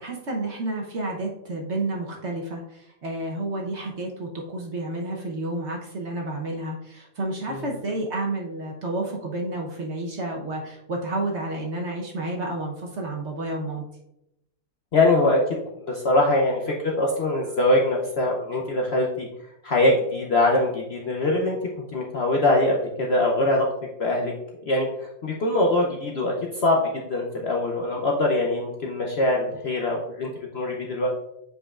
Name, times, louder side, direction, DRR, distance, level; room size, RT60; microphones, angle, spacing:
voice 1, 0.0-13.8, right 2 dB, 50° right, -1 dB, 1.1 m, -30 dB
voice 2, 14.9-19.3 19.6-21.6 21.9-23.7 24.0-24.3 24.7-31.1, left 2 dB, 50° left, -1 dB, 0.8 m, -23 dB
7.6 x 5.3 x 2.4 m, 0.85 s
omnidirectional pair, 1.7 m